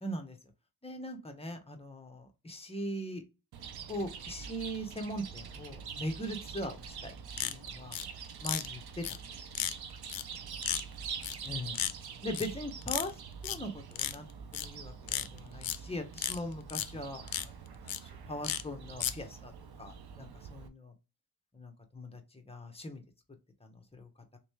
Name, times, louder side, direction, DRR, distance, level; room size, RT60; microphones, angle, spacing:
voice 1, 0.0-0.4 0.8-3.2 3.9-7.2 7.4-8.0 8.4-9.0 11.4-11.8 12.2-13.1 13.4-14.3 14.5-17.5 18.0-19.5 19.8-20.9 21.5-23.0 23.6-24.4, equal, 15° left, 4 dB, 0.9 m, -40 dB
Chirp tweet, 3.5-20.7, right 6 dB, 80° right, 0.6 m, -45 dB
sound 1, 7.3-8.0 8.4-8.7 9.0-9.2 9.5-9.7 10.1-10.2 10.6-10.8 11.2-11.5 11.7-11.9 12.3-12.5 12.8-13.1 13.4-13.6 13.9-14.1 14.5-14.6 15.1-15.8 16.2-16.4 16.7-16.9 17.3-17.4 17.9-18.0 18.4-18.6 19.0-19.1, left 10 dB, 65° left, 0.5 m, -33 dB
3.2 x 3.1 x 3.1 m, 0.29 s
wide cardioid pair, 70°, 38 cm